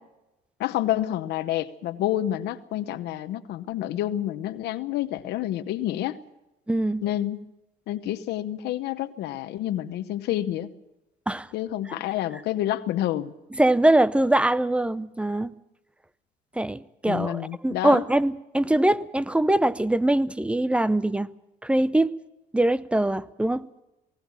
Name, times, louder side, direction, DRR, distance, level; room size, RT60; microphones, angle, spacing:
voice 1, 0.6-6.2 7.0-7.4 7.9-10.7 11.5-13.3 17.0-18.0, left 13 dB, 80° left, 11 dB, 1.0 m, -28 dB
voice 2, 6.7-7.0 11.3-11.5 13.5-15.5 16.6-21.3 21.6-22.1 22.5-23.7, right 1 dB, 5° right, 16 dB, 0.7 m, -22 dB
19.5 x 18.0 x 7.3 m, 0.96 s
cardioid pair, 110°, 17 cm